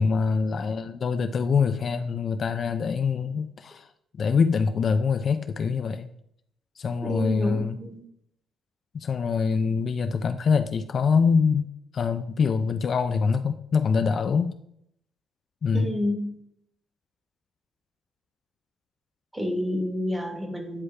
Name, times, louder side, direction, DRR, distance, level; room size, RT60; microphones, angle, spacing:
voice 1, 0.0-3.9 4.2-6.1 6.8-7.8 8.9-11.7 11.9-14.5 15.6-15.9, left 5 dB, 50° left, 9 dB, 0.4 m, -24 dB
voice 2, 7.0-8.0 15.7-16.4 19.3-20.8, left 1 dB, 15° right, 4 dB, 1.3 m, -29 dB
9.7 x 3.3 x 3.2 m, 0.72 s
cardioid pair, 90°, 0 cm